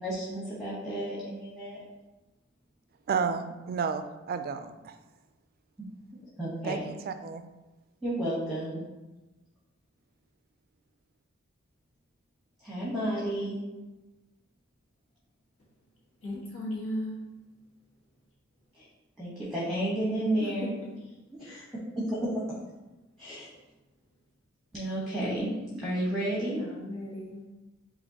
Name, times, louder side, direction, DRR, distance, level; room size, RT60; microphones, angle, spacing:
voice 1, 0.0-1.8 6.4-6.8 8.0-8.8 12.6-13.6 18.7-18.9 19.2-20.7 21.4-21.6 21.9-22.6 23.2-23.5 24.7-25.5 25.8-26.6, right 1 dB, ahead, -7 dB, 1.0 m, -31 dB
voice 2, 3.1-4.9 6.6-7.4, right 6 dB, 45° right, 9 dB, 0.3 m, -32 dB
voice 3, 16.2-17.2 20.4-20.7 21.0-21.1 21.4-21.8 26.6-27.4, left 1 dB, 70° left, -5 dB, 1.5 m, -37 dB
7.3 x 2.6 x 2.7 m, 1.1 s
head